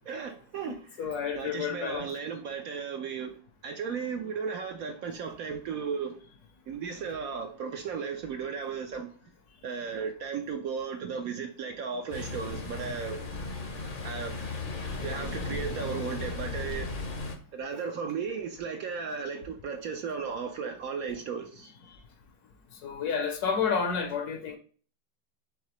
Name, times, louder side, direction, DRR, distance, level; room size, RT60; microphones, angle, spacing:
voice 1, 0.1-3.3 3.6-6.2 6.7-9.1 9.6-13.2 14.0-14.3 15.0-16.9 17.5-21.7, right 6 dB, 65° right, 0.9 m, -35 dB
voice 2, 0.7-2.1 22.8-24.6, left 6 dB, 65° left, 1.2 m, -30 dB
Ocean, 12.1-17.4, left 3 dB, 40° left, 0.7 m, -36 dB
4.8 x 3.6 x 3.0 m
omnidirectional pair, 1.9 m